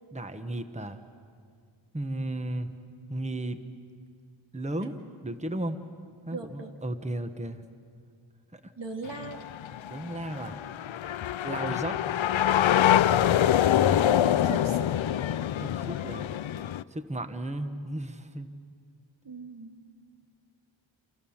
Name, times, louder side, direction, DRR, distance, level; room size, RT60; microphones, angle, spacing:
voice 1, 0.1-1.0 1.9-2.7 3.1-3.6 4.5-5.0 5.2-5.8 6.3-7.7 8.5-8.7 9.9-10.6 11.4-12.0 15.6-16.3 16.9-18.5, right 1 dB, 15° right, 9 dB, 1.2 m, -34 dB
voice 2, 6.3-6.7 8.8-9.4 14.4-14.9 19.2-19.7, right 3 dB, 65° right, 4 dB, 2.5 m, -39 dB
sound 1, 9.1-16.8, left 11 dB, 75° left, 0.6 m, -25 dB
28.5 x 27.5 x 7.3 m, 2.2 s
wide cardioid pair, 115°, 47 cm